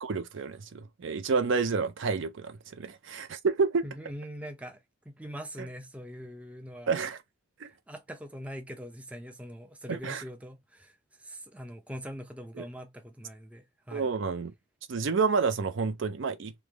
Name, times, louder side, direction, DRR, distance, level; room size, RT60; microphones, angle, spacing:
voice 1, 0.0-3.9 6.9-7.2 7.6-7.7 9.9-10.2 12.6-12.7 13.9-14.5 14.9-16.5, right 4 dB, 65° right, 0.5 m, -29 dB
voice 2, 3.8-7.0 7.6-14.1, equal, 5° right, 0.4 m, -43 dB
3.3 x 2.1 x 3.3 m
head